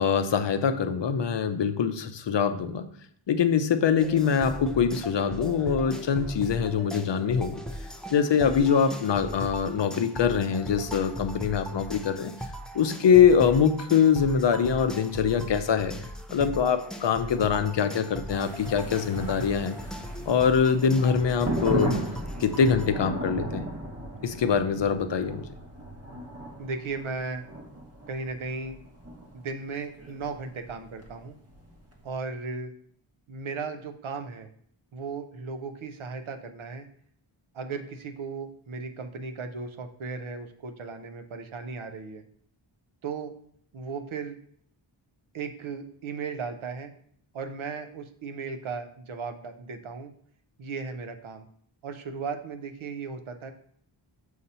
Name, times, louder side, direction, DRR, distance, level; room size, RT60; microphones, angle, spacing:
voice 1, 0.0-2.9 3.3-7.6 8.1-12.3 12.7-15.9 16.3-19.8 20.3-22.0 22.4-23.7 24.2-25.4, left 7 dB, 60° left, 10 dB, 0.6 m, -23 dB
sound 1, 4.0-22.9, equal, ahead, 0.4 m, -39 dB
sound 2, 18.3-32.1, right 1 dB, 30° right, 1.0 m, -36 dB
voice 2, 26.6-27.4 28.1-28.8 29.3-31.4 32.0-32.7 33.3-34.5 34.9-36.9 37.5-42.2 43.0-43.3 43.7-44.4 45.3-46.9 47.3-50.1 50.6-51.5 51.8-53.5, right 4 dB, 75° right, 6 dB, 0.8 m, -36 dB
6.4 x 2.8 x 5.4 m, 0.63 s
wide cardioid pair, 95°, 49 cm